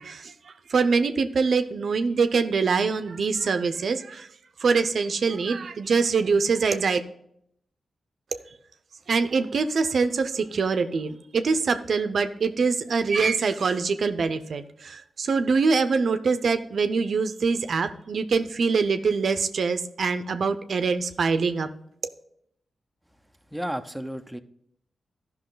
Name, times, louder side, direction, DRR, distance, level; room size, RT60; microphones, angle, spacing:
voice 1, 0.0-4.3 4.6-7.0 9.1-21.7, right 4 dB, 70° right, 9 dB, 0.6 m, -24 dB
voice 2, 23.5-24.4, equal, ahead, 7 dB, 0.7 m, -33 dB
12.5 x 5.7 x 3.9 m, 0.71 s
cardioid pair, 65°, 0 cm